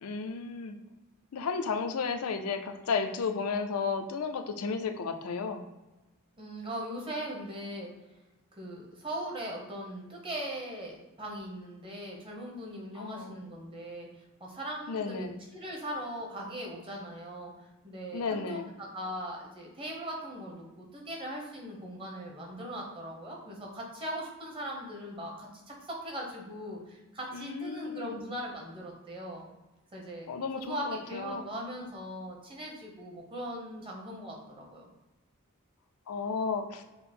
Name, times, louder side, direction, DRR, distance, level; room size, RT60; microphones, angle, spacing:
voice 1, 0.0-0.8 1.3-5.6 13.0-13.4 14.9-15.4 18.1-18.7 27.3-28.2 30.3-31.4 36.1-36.8, left 5 dB, 80° left, 6 dB, 0.5 m, -33 dB
voice 2, 6.4-7.9 8.6-14.1 14.4-15.3 15.5-17.5 17.8-29.5 29.9-34.9, equal, 25° right, -1 dB, 0.9 m, -40 dB
5.3 x 2.0 x 4.3 m, 1.1 s
head